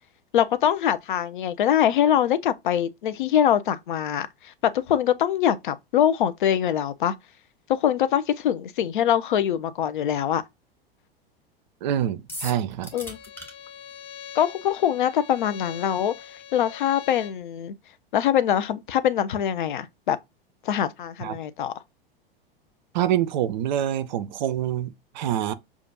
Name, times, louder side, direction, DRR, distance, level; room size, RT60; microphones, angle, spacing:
voice 1, 0.3-7.1 7.7-10.4 12.9-13.2 14.3-16.1 16.5-17.7 18.1-20.2 20.6-21.7, left 10 dB, 60° left, 0.6 m, -23 dB
voice 2, 11.8-12.9 21.2-21.4 22.9-25.5, right 11 dB, 50° right, 0.5 m, -26 dB
sound 1, 12.3-13.5, left 1 dB, 5° left, 1.5 m, -37 dB
Bowed string instrument, 12.9-17.4, left 9 dB, 40° left, 1.2 m, -43 dB
6.6 x 2.4 x 2.6 m
figure-of-eight pair, 90°, 29 cm